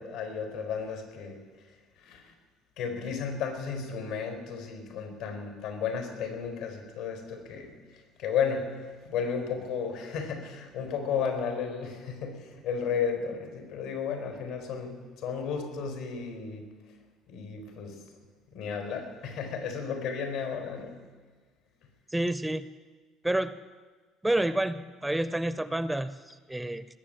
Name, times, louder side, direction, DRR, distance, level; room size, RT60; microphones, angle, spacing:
voice 1, 0.0-1.3 2.0-2.2 2.8-7.7 8.2-8.6 9.0-16.7 17.3-17.9 18.5-21.0, left 6 dB, 85° left, 5 dB, 4.3 m, -33 dB
voice 2, 22.1-22.7 23.2-23.5 24.2-26.9, right 1 dB, 5° right, 14 dB, 0.5 m, -29 dB
19.5 x 7.2 x 9.0 m, 1.4 s
cardioid pair, 120°, 0 cm